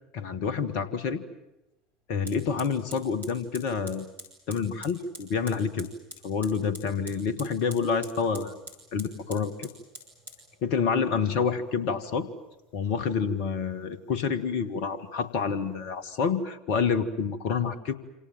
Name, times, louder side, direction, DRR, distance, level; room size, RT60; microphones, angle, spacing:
voice 1, 0.1-1.2 2.1-4.1 4.5-5.9 6.2-8.5 8.9-9.7 10.6-12.3 12.7-17.9, left 6 dB, 55° left, 14 dB, 1.9 m, -28 dB
Fire, 2.3-16.3, equal, 80° right, 7.3 m, -49 dB
27.5 x 27.0 x 7.6 m, 0.95 s
figure-of-eight pair, 70°, 0 cm